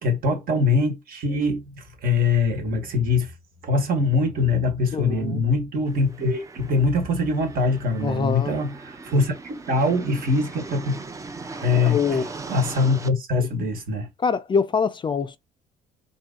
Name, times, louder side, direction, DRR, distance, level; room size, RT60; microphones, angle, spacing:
voice 1, 0.0-3.3 3.6-11.0 11.5-14.1, left 3 dB, 60° right, 1.5 m, -23 dB
voice 2, 4.9-5.4 8.0-8.5 11.7-12.3 14.2-15.4, left 5 dB, 30° left, 0.4 m, -24 dB
sound 1, 5.9-13.1, right 3 dB, 20° right, 0.6 m, -39 dB
4.5 x 2.7 x 3.7 m
cardioid pair, 110°, 17 cm